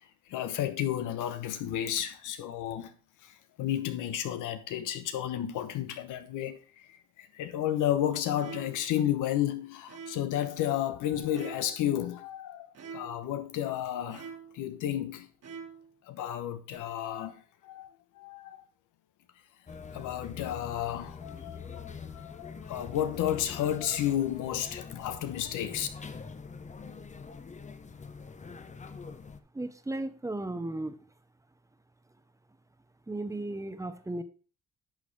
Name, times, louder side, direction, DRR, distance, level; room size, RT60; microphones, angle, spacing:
voice 1, 0.3-2.9 3.2-14.3 14.5-15.3 16.1-17.9 18.1-18.6 19.9-25.9, left 11 dB, 90° left, 1.0 m, -32 dB
sound 1, 8.4-9.0 9.9-10.4 11.3-11.9 12.7-13.3 14.1-14.7 15.4-15.9 16.7-16.8, right 6 dB, 55° right, 1.7 m, -45 dB
sound 2, 19.7-29.4, left 5 dB, 25° left, 0.7 m, -44 dB
voice 2, 29.5-31.0 33.1-34.2, right 2 dB, 10° right, 0.8 m, -35 dB
10.5 x 6.4 x 3.3 m
cardioid pair, 90°, 30 cm